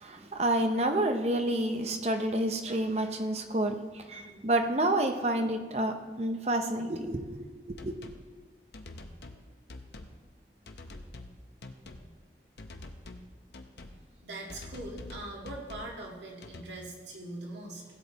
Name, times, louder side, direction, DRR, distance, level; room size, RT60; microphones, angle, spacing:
voice 1, 0.0-8.0, right 1 dB, 35° right, 6 dB, 0.8 m, -29 dB
sound 1, 7.8-8.2 8.7-9.4 9.7-10.2 10.7-11.3 11.6-12.1 12.6-13.3 13.5-14.0 14.5-15.9 16.4-16.6, left 2 dB, 70° left, 0.8 m, -45 dB
voice 2, 14.2-17.8, right 1 dB, 85° right, -1 dB, 2.0 m, -41 dB
17.0 x 7.6 x 4.1 m, 1.4 s
head